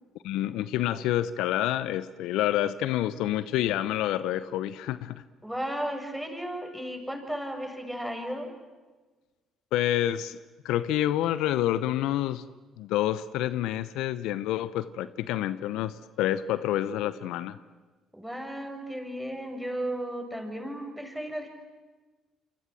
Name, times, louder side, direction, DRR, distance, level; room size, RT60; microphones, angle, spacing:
voice 1, 0.2-5.2 9.7-10.4 10.6-12.5 12.8-17.6, left 13 dB, 80° left, 15 dB, 0.8 m, -28 dB
voice 2, 5.4-8.5 18.1-21.5, right 1 dB, 5° right, 4 dB, 7.1 m, -34 dB
28.5 x 25.0 x 7.7 m, 1.3 s
hypercardioid pair, 60°, 0 cm